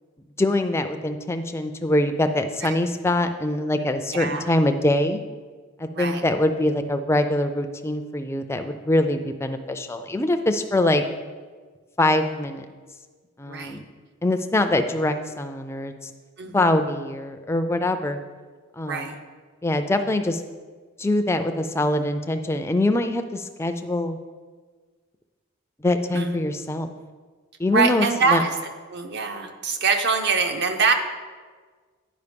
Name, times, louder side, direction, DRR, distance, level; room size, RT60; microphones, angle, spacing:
voice 1, 0.4-5.2 5.8-11.0 12.0-12.7 13.4-13.8 14.2-16.1 16.5-18.2 18.8-19.1 19.6-20.4 21.0-24.2 25.8-26.9 27.6-28.4, left 1 dB, 10° left, 7 dB, 0.4 m, -23 dB
voice 2, 4.1-4.5 5.9-6.2 13.5-13.8 16.4-16.8 18.9-19.2 26.1-26.4 27.7-28.5 28.9-30.9, right 4 dB, 50° right, 6 dB, 0.7 m, -24 dB
9.6 x 5.1 x 5.2 m, 1.5 s
head